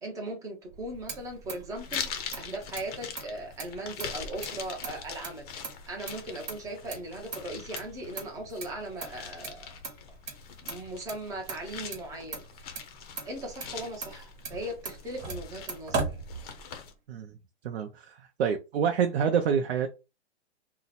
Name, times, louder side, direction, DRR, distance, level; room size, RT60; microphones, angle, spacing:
voice 1, 0.0-9.8 10.6-12.7 13.2-16.1, right 1 dB, 10° right, 0.6 m, -39 dB
Motor vehicle (road), 0.7-16.9, right 4 dB, 40° right, 1.2 m, -40 dB
sound 1, 1.7-16.9, left 7 dB, 35° left, 0.6 m, -43 dB
voice 2, 17.6-19.9, right 7 dB, 65° right, 0.6 m, -27 dB
2.8 x 2.1 x 4.0 m
hypercardioid pair, 145°, 34 cm